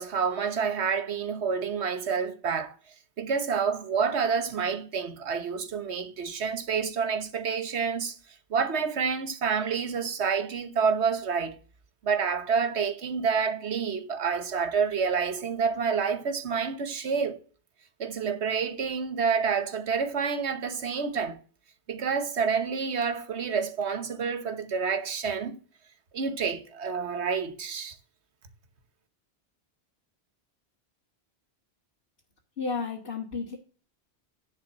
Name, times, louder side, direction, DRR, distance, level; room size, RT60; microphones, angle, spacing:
voice 1, 0.0-2.8 3.2-8.2 8.5-11.6 12.0-17.4 18.0-21.4 21.9-25.6 26.1-28.0, right 6 dB, 80° right, 1.4 m, -28 dB
voice 2, 32.6-33.6, left 4 dB, 65° left, 2.0 m, -32 dB
10.5 x 3.6 x 7.3 m
omnidirectional pair, 1.1 m